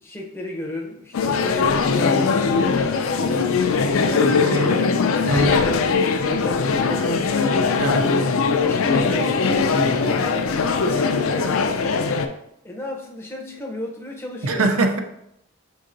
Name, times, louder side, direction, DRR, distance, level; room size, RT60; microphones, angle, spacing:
voice 1, 0.0-5.0 5.3-7.6 8.6-11.8 12.6-14.7, left 1 dB, 10° left, 0 dB, 0.6 m, -33 dB
sound 1, 1.1-12.3, left 4 dB, 75° left, 0.4 m, -20 dB
voice 2, 4.4-4.8 5.2-5.6 7.8-8.1 14.4-15.0, right 2 dB, 90° right, 5 dB, 0.6 m, -22 dB
5.4 x 3.8 x 2.5 m, 0.78 s
head